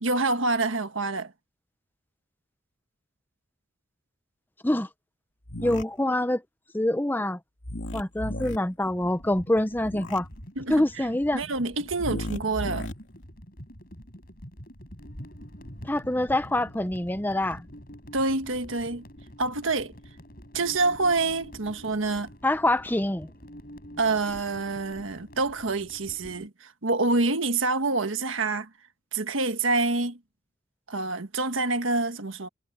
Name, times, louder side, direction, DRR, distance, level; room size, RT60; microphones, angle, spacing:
voice 1, 0.0-1.3 10.6-11.1 11.3-12.9 18.1-19.0 19.4-19.9 20.5-22.3 24.0-28.7 29.1-30.2 30.9-32.5, right 3 dB, 85° right, 1.5 m, -27 dB
sound 1, 5.5-5.8 7.6-8.6 9.8-10.2 12.0-12.9, left 1 dB, 70° left, 2.8 m, -34 dB
voice 2, 5.6-6.4 6.7-7.4 7.9-10.3 10.7-11.4 15.8-17.7 22.4-23.3, left 1 dB, 10° left, 0.7 m, -25 dB
sound 2, 8.8-26.5, equal, 50° left, 7.9 m, -46 dB
head